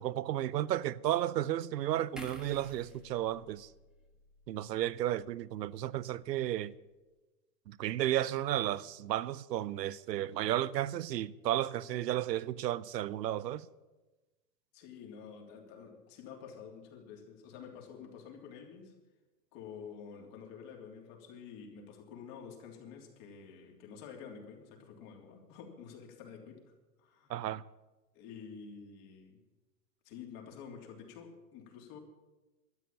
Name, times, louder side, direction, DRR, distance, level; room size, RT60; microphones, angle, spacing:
voice 1, 0.0-3.7 4.5-6.7 7.7-13.7 27.3-27.6, right 13 dB, 90° right, 0.7 m, -33 dB
sound 1, 2.2-5.5 5.9-6.1, equal, ahead, 1.5 m, -52 dB
voice 2, 14.7-18.9 19.5-26.6 27.0-27.3 28.1-29.4 30.0-32.0, left 6 dB, 40° left, 3.2 m, -49 dB
12.5 x 9.3 x 9.0 m
hypercardioid pair, 130°, 48 cm